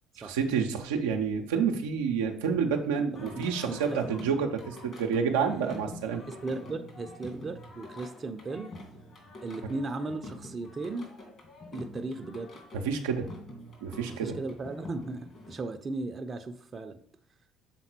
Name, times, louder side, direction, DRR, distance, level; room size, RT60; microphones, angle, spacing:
voice 1, 0.2-6.2 12.8-13.2 13.8-14.4, right 6 dB, 85° right, 2 dB, 0.6 m, -29 dB
Singing, 3.1-15.5, left 1 dB, 45° left, 2.5 m, -46 dB
voice 2, 3.4-4.0 5.5-5.6 6.3-8.7 9.4-11.1 11.7-12.5 14.2-17.0, right 3 dB, 35° right, 7 dB, 0.7 m, -36 dB
6.8 x 3.8 x 4.5 m, 0.63 s
hypercardioid pair, 60°, 0 cm